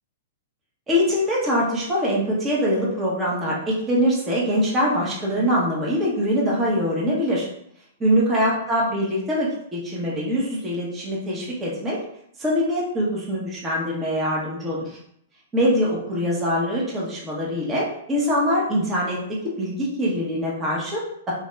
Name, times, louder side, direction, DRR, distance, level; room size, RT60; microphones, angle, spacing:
voice 1, 0.9-7.5 8.0-12.0 12.4-14.9 15.5-21.3, equal, 15° right, -5 dB, 1.2 m, -23 dB
3.1 x 2.7 x 3.4 m, 0.71 s
hypercardioid pair, 115°, 0 cm